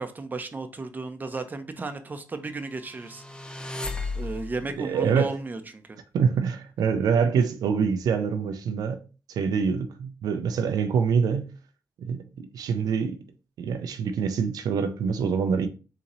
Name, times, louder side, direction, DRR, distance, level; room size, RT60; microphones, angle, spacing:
voice 1, 0.0-3.2 4.1-6.0, right 3 dB, 25° right, 0.6 m, -34 dB
sound 1, 3.0-4.8, left 3 dB, 15° left, 0.5 m, -34 dB
voice 2, 4.8-5.3 6.1-9.0 9.3-11.5 12.0-13.2 13.6-15.7, right 6 dB, 80° right, 0.4 m, -25 dB
3.9 x 2.8 x 2.9 m
cardioid pair, 80°, 7 cm